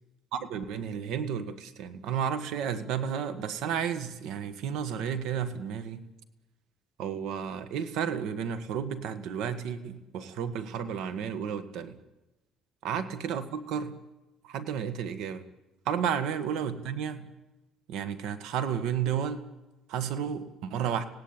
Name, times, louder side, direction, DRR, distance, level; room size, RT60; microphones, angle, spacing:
voice 1, 0.3-6.0 7.0-12.0 12.8-14.0 14.4-15.4 15.9-17.3 17.9-19.4 19.9-21.0, right 8 dB, 75° right, 11 dB, 1.7 m, -32 dB
25.5 x 17.5 x 8.9 m, 1.1 s
cardioid pair, 135°, 0 cm